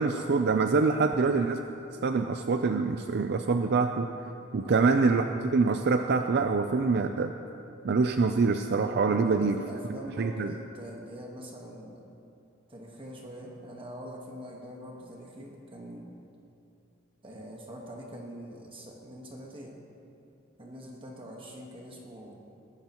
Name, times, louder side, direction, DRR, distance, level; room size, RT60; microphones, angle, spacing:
voice 1, 0.0-1.6 2.0-4.1 4.5-5.3 5.5-7.3 7.8-9.6 10.2-10.5, right 4 dB, 55° right, 6 dB, 0.5 m, -25 dB
voice 2, 4.6-4.9 9.1-12.1 12.7-16.1 17.2-19.8 20.6-22.4, equal, 25° right, -1 dB, 1.4 m, -43 dB
20.0 x 12.5 x 3.0 m, 2.6 s
head